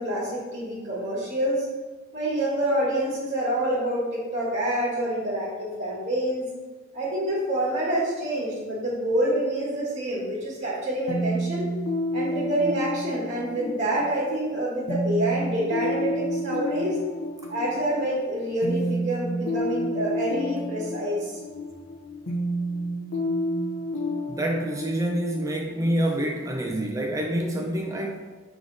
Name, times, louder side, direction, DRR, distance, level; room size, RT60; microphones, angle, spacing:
voice 1, 0.0-1.7 2.1-6.5 6.9-11.7 12.1-17.0 17.5-21.4, right 1 dB, 35° right, -6 dB, 1.5 m, -27 dB
sound 1, 11.1-26.7, equal, 85° left, 1.0 m, -30 dB
voice 2, 24.3-28.3, right 1 dB, 15° right, 0 dB, 0.5 m, -27 dB
6.6 x 3.6 x 3.9 m, 1.3 s
head